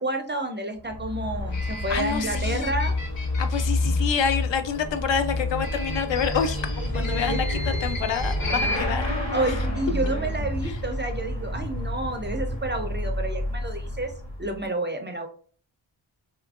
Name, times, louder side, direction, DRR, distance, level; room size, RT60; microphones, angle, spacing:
voice 1, 0.0-2.9 6.9-7.7 9.3-14.1 14.4-15.3, right 2 dB, 25° right, 5 dB, 0.4 m, -30 dB
Motorcycle / Accelerating revving vroom, 0.8-14.6, left 1 dB, 45° left, 1.4 m, -29 dB
sound 1, 1.5-4.0 5.6-8.8, left 1 dB, 90° left, 1.3 m, -35 dB
voice 2, 1.9-2.7 3.4-9.1 10.7-10.8, left 7 dB, 65° left, 8 dB, 0.5 m, -27 dB
2.7 x 2.5 x 2.3 m, 0.44 s
cardioid pair, 65°, 49 cm